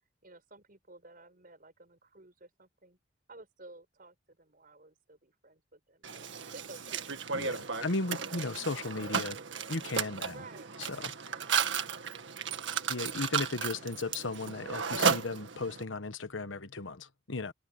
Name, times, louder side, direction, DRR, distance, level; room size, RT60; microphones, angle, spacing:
voice 1, 0.2-3.0 3.3-7.1 7.6-8.5 8.7-9.5 10.2-10.8 11.2-13.8, right 2 dB, 45° right, 5.3 m, -55 dB
Mechanisms, 6.0-15.8, right 6 dB, 75° right, 1.8 m, -34 dB
voice 2, 7.3-9.4 9.7-10.4 10.9-11.1 12.9-17.5, left 3 dB, 80° left, 1.2 m, -36 dB
head